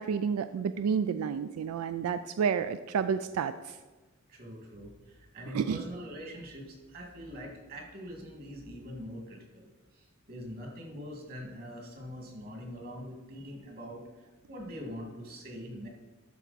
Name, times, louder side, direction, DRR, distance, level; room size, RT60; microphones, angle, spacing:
voice 1, 0.0-3.8 5.5-5.8, right 6 dB, 90° right, 11 dB, 0.3 m, -30 dB
voice 2, 4.3-15.9, equal, 45° right, 1 dB, 1.9 m, -43 dB
12.0 x 4.5 x 4.0 m, 1.3 s
head